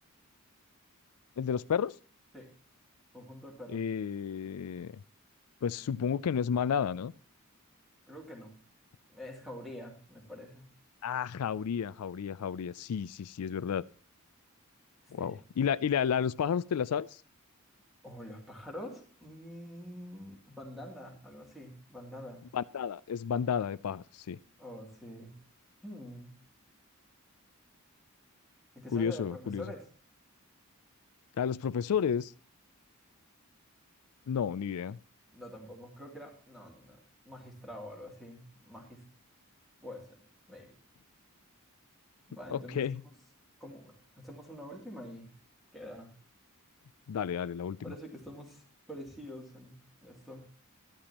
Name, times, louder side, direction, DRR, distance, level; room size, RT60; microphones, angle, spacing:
voice 1, 1.4-1.9 3.7-5.0 5.6-7.1 11.0-13.8 15.1-17.2 22.5-24.4 28.9-29.7 31.4-32.3 34.3-35.0 42.5-43.0 47.1-47.8, left 7 dB, 85° left, 19 dB, 0.4 m, -31 dB
voice 2, 3.1-3.8 8.1-8.5 9.1-10.7 15.2-15.4 18.0-22.4 24.6-25.3 25.8-26.3 28.7-29.8 35.3-37.0 37.2-39.0 39.8-40.7 42.3-43.1 43.6-45.3 45.7-46.1 47.8-50.4, equal, ahead, 0 dB, 2.8 m, -46 dB
14.0 x 12.0 x 2.9 m, 0.42 s
head